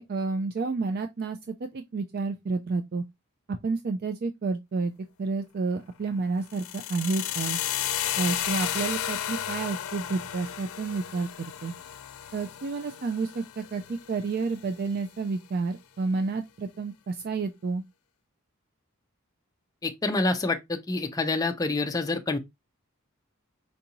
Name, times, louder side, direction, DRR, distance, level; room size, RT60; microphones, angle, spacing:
voice 1, 0.0-1.4 1.7-3.0 3.6-4.9 5.2-6.6 6.9-7.6 8.2-11.7 12.3-17.8, right 4 dB, 45° right, 0.4 m, -30 dB
sound 1, 6.5-14.5, left 11 dB, 75° left, 0.4 m, -33 dB
voice 2, 19.8-22.4, left 3 dB, 15° left, 0.4 m, -27 dB
4.6 x 2.6 x 2.8 m
head